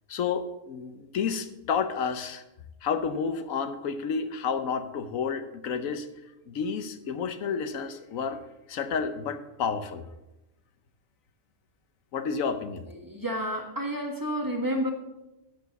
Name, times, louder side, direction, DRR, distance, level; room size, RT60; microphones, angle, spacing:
voice 1, 0.1-2.4 2.8-6.1 6.5-8.4 8.7-10.0 12.1-12.8, left 6 dB, 80° left, 10 dB, 1.2 m, -30 dB
voice 2, 12.9-14.9, equal, 15° right, 1 dB, 1.4 m, -30 dB
12.0 x 5.1 x 6.9 m, 0.96 s
omnidirectional pair, 1.4 m